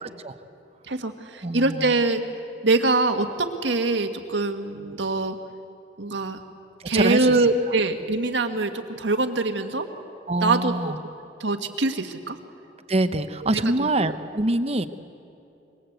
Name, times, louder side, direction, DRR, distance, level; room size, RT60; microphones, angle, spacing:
voice 1, 0.0-0.4 1.4-1.9 6.9-7.3 10.3-11.0 12.9-14.9, right 2 dB, 35° right, 10 dB, 0.8 m, -25 dB
voice 2, 0.9-2.2 2.6-5.4 6.0-6.4 6.9-9.9 10.4-10.9 11.4-12.4 13.4-13.9, right 3 dB, 85° right, 6 dB, 1.7 m, -24 dB
26.0 x 23.0 x 8.1 m, 2.8 s
head